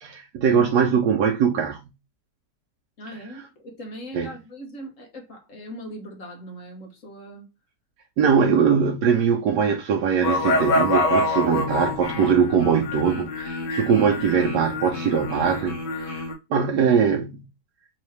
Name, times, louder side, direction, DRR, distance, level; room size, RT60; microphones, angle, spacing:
voice 1, 0.0-1.8 4.1-4.3 8.2-17.4, right 6 dB, 75° right, 1.2 m, -21 dB
voice 2, 3.0-7.5, equal, 50° left, 1.3 m, -40 dB
sound 1, 10.2-16.3, left 2 dB, 85° left, 1.9 m, -26 dB
4.0 x 3.2 x 3.0 m
omnidirectional pair, 1.8 m